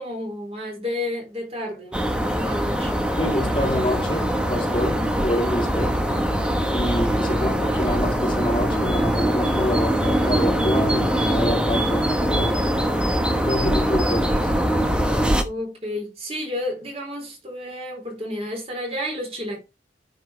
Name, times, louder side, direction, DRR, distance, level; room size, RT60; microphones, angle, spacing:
voice 1, 0.0-3.1 15.4-19.6, left 1 dB, 35° right, 4.2 m, -31 dB
sound 1, 1.9-15.4, equal, 5° right, 1.2 m, -22 dB
voice 2, 3.2-6.0 6.7-12.6 13.4-14.6, equal, 25° left, 2.2 m, -27 dB
9.6 x 5.5 x 4.5 m
head